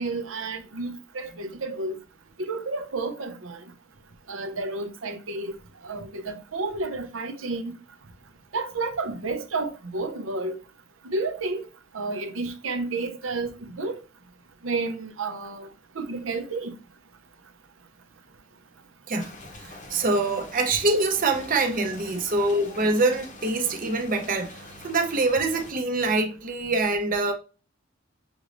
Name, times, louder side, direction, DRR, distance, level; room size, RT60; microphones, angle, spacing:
voice 1, 0.0-2.0 2.4-3.6 4.3-5.5 5.8-7.7 8.5-10.6 11.0-11.7 11.9-14.0 14.6-15.7 15.9-16.7, right 3 dB, 80° right, 0.7 m, -31 dB
sound 1, 19.2-25.7, left 2 dB, 40° left, 0.8 m, -45 dB
voice 2, 19.6-27.3, right 2 dB, 45° right, 0.7 m, -25 dB
6.1 x 3.1 x 2.5 m
head